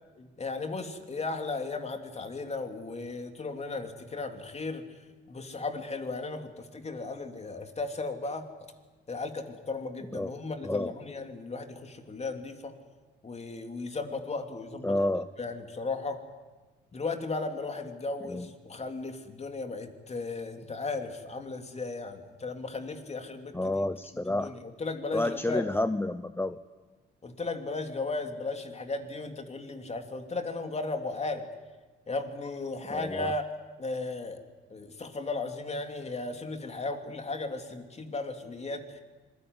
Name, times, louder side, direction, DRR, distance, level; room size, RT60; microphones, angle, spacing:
voice 1, 0.2-4.8 5.3-8.5 9.1-12.7 13.2-15.0 15.4-16.2 16.9-23.8 24.3-25.7 27.2-31.5 32.1-33.4 33.8-34.4 34.7-39.0, left 3 dB, 35° left, 6 dB, 3.1 m, -35 dB
voice 2, 14.8-15.3 18.3-18.5 23.5-24.5 25.1-26.6 32.9-33.3, left 1 dB, 10° left, 12 dB, 0.8 m, -30 dB
26.0 x 21.5 x 9.7 m, 1.3 s
cardioid pair, 90°, 20 cm